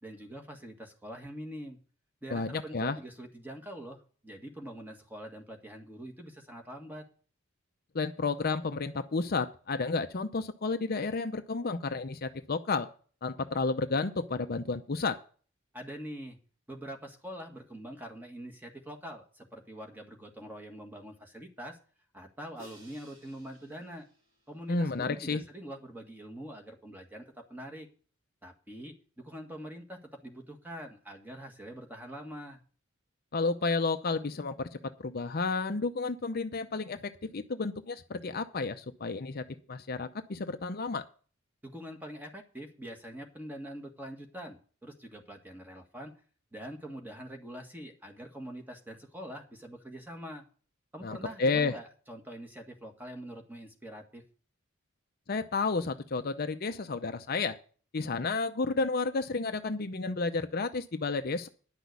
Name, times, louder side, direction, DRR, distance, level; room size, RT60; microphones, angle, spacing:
voice 1, 0.0-1.8 2.2-7.0 15.7-16.4 16.7-21.8 22.1-24.0 24.5-27.9 28.4-32.6 41.6-46.1 46.5-50.4 50.9-54.2, equal, 10° right, 3 dB, 1.7 m, -44 dB
voice 2, 2.3-3.0 7.9-12.9 13.2-15.2 24.7-25.4 33.3-41.0 51.0-51.7 55.3-57.6 57.9-61.5, left 3 dB, 50° left, 8 dB, 0.6 m, -31 dB
Crash cymbal, 22.6-24.8, right 1 dB, 80° right, 5.5 m, -57 dB
10.5 x 6.1 x 8.1 m, 0.41 s
head